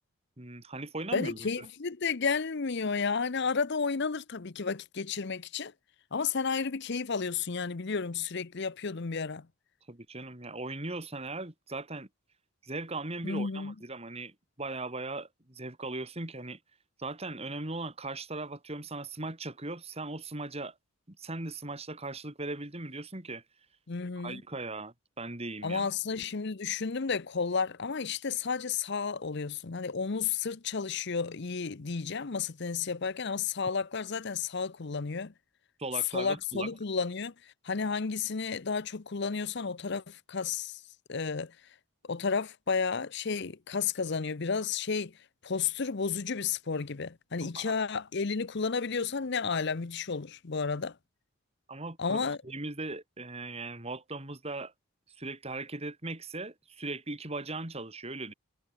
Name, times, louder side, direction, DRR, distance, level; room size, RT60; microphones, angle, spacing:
voice 1, 0.4-1.7 9.9-12.1 12.6-16.6 17.0-20.7 21.1-23.4 24.2-25.9 35.8-36.7 47.4-47.7 51.7-54.7 55.2-58.3, right 2 dB, 30° right, 2.7 m, -39 dB
voice 2, 1.1-5.7 6.1-9.5 13.2-13.7 23.9-24.4 25.6-35.3 36.1-40.8 41.1-41.5 42.1-45.1 45.4-50.9 52.0-52.4, left 5 dB, 55° left, 0.7 m, -32 dB
head